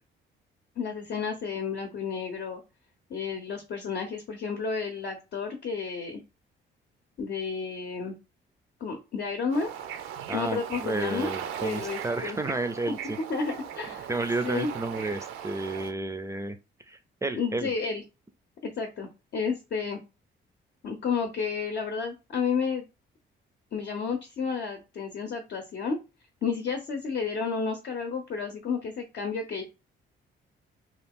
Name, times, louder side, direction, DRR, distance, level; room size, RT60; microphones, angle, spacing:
voice 1, 0.8-2.6 3.1-6.2 7.2-8.1 8.8-9.7 10.3-11.3 11.6-12.4 12.9-13.0 13.3-14.1 14.4-14.7 17.3-18.0 18.6-20.0 20.8-22.8 23.7-26.0 26.4-29.6, left 5 dB, 60° left, 0.7 m, -31 dB
Bird / Ocean, 9.5-15.9, right 8 dB, 90° right, 0.5 m, -38 dB
voice 2, 10.3-13.2 14.1-16.6 16.9-17.7, right 2 dB, 15° right, 0.4 m, -31 dB
2.7 x 2.3 x 3.5 m
cardioid pair, 90°, 20 cm